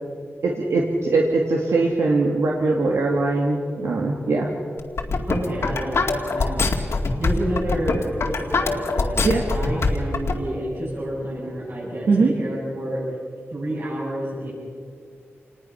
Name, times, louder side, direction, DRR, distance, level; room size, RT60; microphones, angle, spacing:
voice 1, 0.4-4.5 9.2-9.4 12.1-12.3, right 3 dB, 85° right, -1 dB, 2.2 m, -21 dB
sound 1, 4.8-10.3, left 3 dB, 70° left, 2.1 m, -22 dB
voice 2, 5.3-6.7 7.2-13.0 13.5-14.5, right 1 dB, 50° right, -6 dB, 7.6 m, -29 dB
27.5 x 20.0 x 5.9 m, 2.2 s
wide cardioid pair, 145°, 5 cm